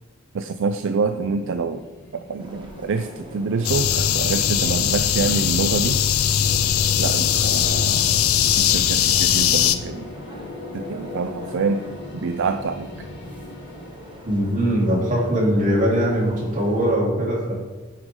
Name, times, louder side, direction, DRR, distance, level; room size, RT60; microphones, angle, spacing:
voice 1, 0.3-1.8 2.1-6.0 7.0-8.1 8.5-10.1 10.7-11.8 12.1-13.1, right 4 dB, 60° right, 8 dB, 0.4 m, -26 dB
sound 1, 0.8-15.7, left 2 dB, 55° left, 1.8 m, -39 dB
sound 2, 2.4-16.9, right 1 dB, 20° right, 1.3 m, -44 dB
sound 3, 3.6-9.8, left 10 dB, 80° left, 0.6 m, -20 dB
voice 2, 14.2-17.5, equal, 40° right, -4 dB, 2.9 m, -21 dB
9.2 x 8.0 x 3.7 m, 1.3 s
head